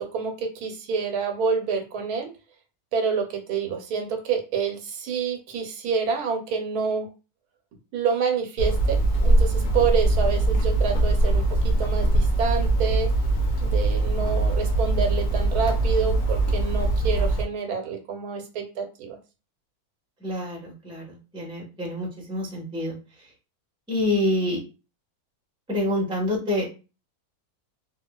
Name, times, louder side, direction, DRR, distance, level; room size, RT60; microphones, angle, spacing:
voice 1, 0.0-2.3 2.9-7.1 7.9-13.1 13.6-19.2, right 6 dB, 85° right, 4 dB, 1.2 m, -27 dB
Hammer, 8.6-17.4, right 2 dB, 85° left, 1.2 m, -22 dB
voice 2, 20.2-23.0 23.9-24.6 25.7-26.7, left 1 dB, 5° right, -3 dB, 0.7 m, -27 dB
3.4 x 2.5 x 2.2 m, 0.31 s
omnidirectional pair, 1.6 m